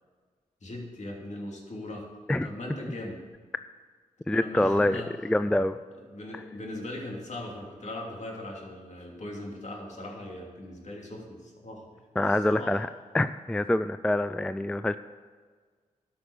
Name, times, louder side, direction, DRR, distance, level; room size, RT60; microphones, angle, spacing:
voice 1, 0.6-2.0 2.4-3.2 4.3-5.1 6.1-12.0 12.5-12.8, left 1 dB, 50° left, -1 dB, 3.0 m, -39 dB
voice 2, 4.3-5.8 6.3-6.4 12.2-12.9 13.1-15.0, left 1 dB, 5° left, 12 dB, 0.4 m, -26 dB
12.5 x 6.1 x 6.5 m, 1.5 s
supercardioid pair, 45°, 15 cm